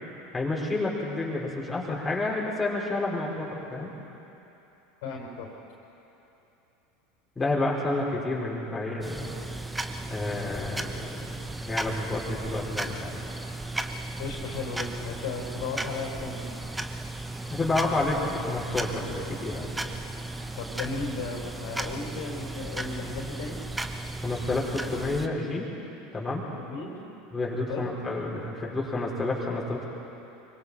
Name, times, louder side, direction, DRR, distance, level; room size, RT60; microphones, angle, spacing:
voice 1, 0.3-3.9 7.4-9.4 10.1-11.3 11.6-13.2 17.5-19.9 24.2-25.7 26.1-26.5 27.3-29.9, left 2 dB, 15° left, -5 dB, 4.9 m, -30 dB
voice 2, 5.0-5.5 14.2-16.5 20.6-23.6 26.6-27.0 27.7-27.9, left 4 dB, 60° left, 0 dB, 4.2 m, -35 dB
sound 1, 9.0-25.3, right 2 dB, 10° right, 1.1 m, -35 dB
25.0 x 24.5 x 4.4 m, 3.0 s
figure-of-eight pair, 80°, 0 cm